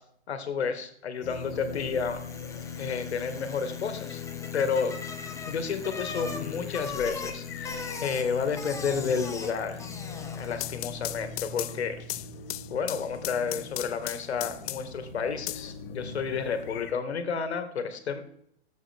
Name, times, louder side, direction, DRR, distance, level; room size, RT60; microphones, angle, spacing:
voice 1, 0.3-2.2 2.8-4.2 4.5-5.0 5.5-9.8 10.3-12.2 12.7-18.2, left 6 dB, 85° left, 8 dB, 2.1 m, -31 dB
sound 1, 1.2-16.9, left 6 dB, 60° left, 1.5 m, -41 dB
Bicycle, 1.4-10.9, left 4 dB, 10° left, 1.3 m, -41 dB
sound 2, 10.6-15.0 15.5-16.4, left 18 dB, 35° left, 0.5 m, -37 dB
14.5 x 8.1 x 3.6 m, 0.69 s
hypercardioid pair, 130°, 32 cm